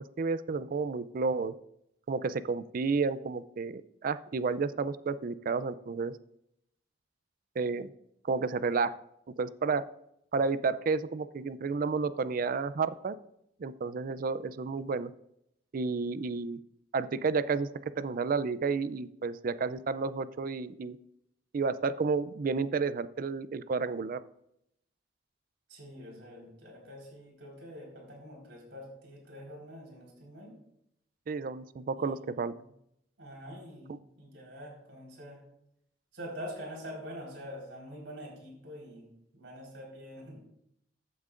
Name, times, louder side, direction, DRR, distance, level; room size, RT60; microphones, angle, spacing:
voice 1, 0.0-1.5 2.1-6.2 7.6-7.9 8.2-8.9 9.4-9.8 10.3-13.1 13.6-15.1 15.7-16.6 16.9-21.0 21.5-24.2 31.3-32.5 33.9-34.0, right 4 dB, 50° right, 15 dB, 0.4 m, -31 dB
voice 2, 25.7-30.5 32.0-32.6 33.2-35.4 36.1-39.0 39.3-40.4, equal, 85° right, -2 dB, 4.3 m, -45 dB
15.0 x 8.5 x 2.5 m, 0.78 s
head